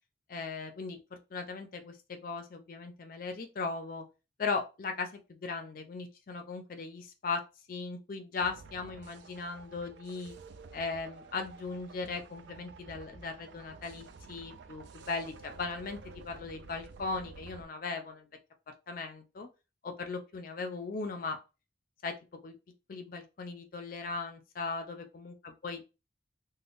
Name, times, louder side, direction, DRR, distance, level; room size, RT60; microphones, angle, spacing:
voice 1, 0.3-4.0 4.4-7.4 7.7-10.3 10.7-16.0 16.2-18.3 18.9-19.5 19.8-21.4 22.0-22.1 22.4-22.5 22.9-25.9, left 4 dB, 50° left, 6 dB, 0.4 m, -38 dB
sound 1, 8.4-17.6, right 4 dB, 70° right, 0.3 m, -51 dB
3.5 x 2.1 x 2.5 m, 0.28 s
head